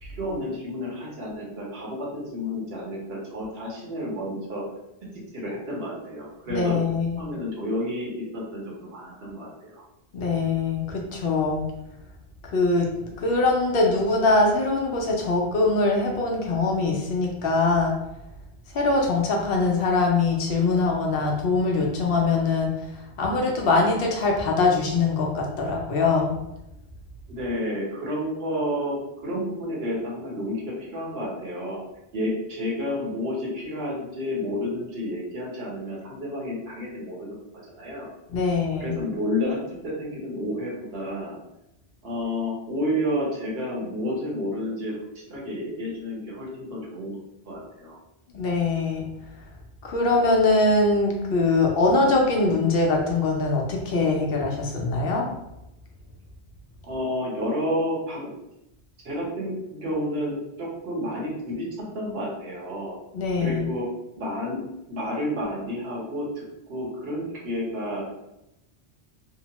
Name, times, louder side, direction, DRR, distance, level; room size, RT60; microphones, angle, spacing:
voice 1, 0.0-4.6 5.3-6.8 7.2-9.8 27.3-31.8 32.1-37.4 37.8-38.1 38.8-41.4 42.0-44.9 45.3-47.2 47.4-47.9 56.8-58.3 59.0-61.7 61.9-63.0 63.4-63.9 64.2-64.6 64.9-66.4 66.7-68.1, left 1 dB, 70° right, -5 dB, 1.1 m, -30 dB
voice 2, 6.5-7.2 10.1-11.6 12.4-12.9 13.2-18.0 18.7-22.8 23.2-26.4 38.3-39.0 48.3-49.1 49.8-55.2 63.1-63.6, left 3 dB, 65° left, 0 dB, 0.8 m, -22 dB
2.9 x 2.0 x 2.8 m, 0.88 s
omnidirectional pair, 1.1 m